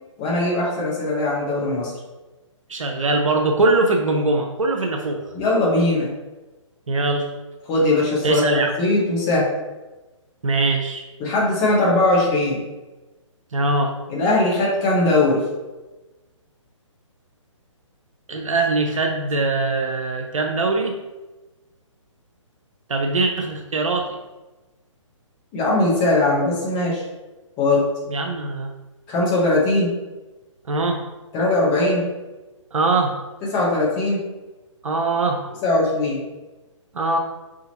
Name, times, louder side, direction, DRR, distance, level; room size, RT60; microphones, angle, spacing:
voice 1, 0.2-1.9 5.3-6.1 7.7-9.5 11.2-12.6 14.1-15.4 25.5-27.0 27.6-27.9 29.1-29.9 31.3-32.0 33.4-34.2 35.6-36.2, left 2 dB, 25° left, -4 dB, 1.3 m, -20 dB
voice 2, 2.7-5.2 6.9-7.3 8.2-8.7 10.4-11.0 13.5-13.9 18.3-20.9 22.9-24.2 28.1-28.7 30.7-31.0 32.7-33.2 34.8-35.4 36.9-37.2, right 2 dB, 80° right, 3 dB, 0.6 m, -21 dB
4.4 x 3.7 x 2.9 m, 1.1 s
figure-of-eight pair, 140°, 17 cm